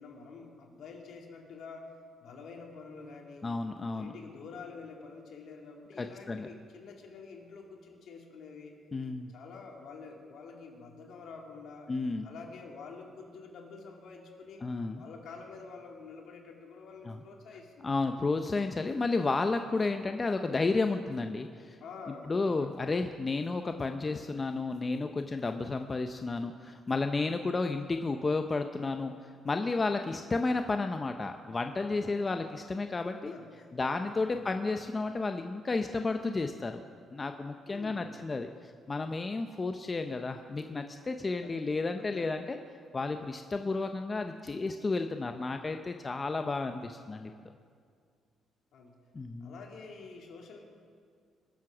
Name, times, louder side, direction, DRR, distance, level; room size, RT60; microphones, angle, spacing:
voice 1, 0.0-2.0 2.2-3.6 3.9-8.8 9.3-11.9 12.2-14.7 14.9-18.0 21.8-22.7 32.0-32.5 33.3-33.7 34.2-34.6 37.7-38.2 41.4-41.6 42.0-42.2 48.7-49.0 49.4-50.6, left 4 dB, 70° left, 0 dB, 2.4 m, -48 dB
voice 2, 3.4-4.1 6.0-6.5 8.9-9.3 11.9-12.3 14.6-15.0 17.0-17.2 17.8-21.8 22.2-33.3 33.7-36.8 37.1-38.5 38.9-42.6 42.9-47.3 49.1-49.6, left 3 dB, 30° left, 6 dB, 0.6 m, -32 dB
21.0 x 7.6 x 6.0 m, 2.1 s
cardioid pair, 90°, 0 cm